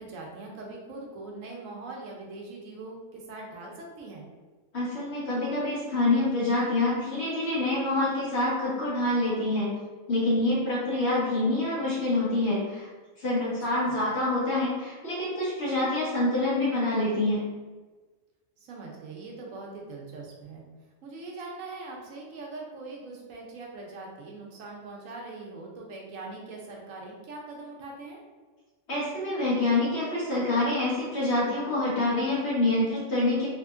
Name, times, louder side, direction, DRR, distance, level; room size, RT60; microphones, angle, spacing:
voice 1, 0.0-4.2 13.4-14.0 18.6-20.7 21.0-28.2, right 3 dB, 90° right, -1 dB, 1.1 m, -42 dB
voice 2, 4.7-9.7 10.1-12.9 13.2-17.5 28.9-33.5, left 2 dB, 55° left, -8 dB, 1.6 m, -26 dB
3.5 x 3.0 x 2.5 m, 1.3 s
omnidirectional pair, 1.3 m